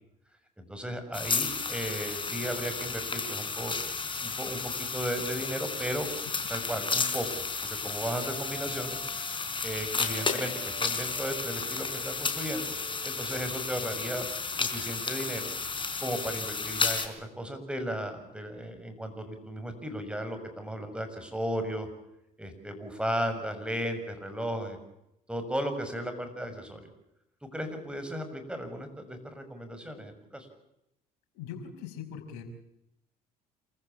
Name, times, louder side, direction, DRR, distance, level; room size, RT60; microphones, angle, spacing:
voice 1, 0.6-3.7 4.2-6.1 6.5-7.3 7.6-9.0 9.6-12.7 13.0-14.3 14.5-15.5 16.0-21.9 22.4-24.8 25.3-26.9 27.5-30.5, equal, 5° right, 7 dB, 6.9 m, -35 dB
sound 1, 1.1-17.1, left 4 dB, 30° left, 4.3 m, -33 dB
sound 2, 7.8-14.2, right 9 dB, 70° right, 6.0 m, -51 dB
voice 2, 31.3-32.4, left 8 dB, 75° left, 3 dB, 5.6 m, -41 dB
28.0 x 15.5 x 8.3 m, 0.83 s
hypercardioid pair, 65°, 18 cm